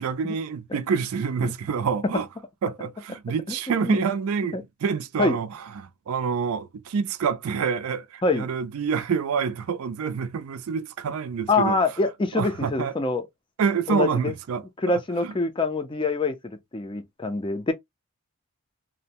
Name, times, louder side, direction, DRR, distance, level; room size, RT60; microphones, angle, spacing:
voice 1, 0.0-2.3 2.6-11.8 12.3-12.9 13.6-14.6 15.2-15.3, right 6 dB, 75° right, 0.4 m, -27 dB
voice 2, 3.5-4.0 4.5-4.6 5.2-5.4 8.2-8.5 11.5-13.3 13.9-14.3 14.8-17.7, left 3 dB, 20° left, 0.4 m, -25 dB
2.6 x 2.0 x 2.8 m
head